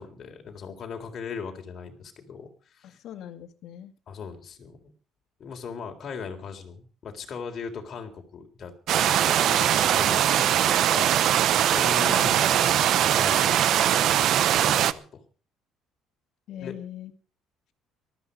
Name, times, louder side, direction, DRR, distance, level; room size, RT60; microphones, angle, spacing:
voice 1, 0.0-3.0 4.1-4.9 5.4-11.4 11.7-15.2 16.6-16.7, left 5 dB, 35° left, 3 dB, 3.8 m, -39 dB
voice 2, 2.8-3.9 12.0-12.3 16.5-17.1, left 11 dB, 55° left, 8 dB, 2.2 m, -40 dB
sound 1, 8.9-14.9, right 11 dB, 55° right, 0.8 m, -21 dB
19.0 x 13.5 x 5.3 m, 0.38 s
cardioid pair, 155°, 0 cm